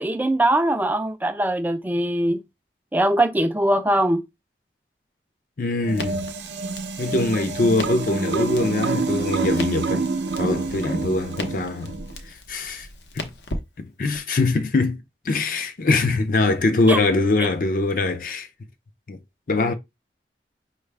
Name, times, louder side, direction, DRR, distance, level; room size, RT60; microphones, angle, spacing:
voice 1, 0.0-2.4 2.9-4.2 16.9-17.0, right 1 dB, 10° right, 0.4 m, -21 dB
voice 2, 5.6-6.2 7.0-10.1 10.4-11.9 12.5-12.9 13.1-13.3 13.8-18.5 19.1-19.2 19.5-19.7, left 2 dB, 50° left, 0.5 m, -23 dB
sound 1, 5.8-12.1, right 4 dB, 80° right, 0.6 m, -27 dB
Crackle, 5.9-14.2, left 1 dB, 75° left, 0.9 m, -38 dB
5.4 x 2.4 x 3.3 m
head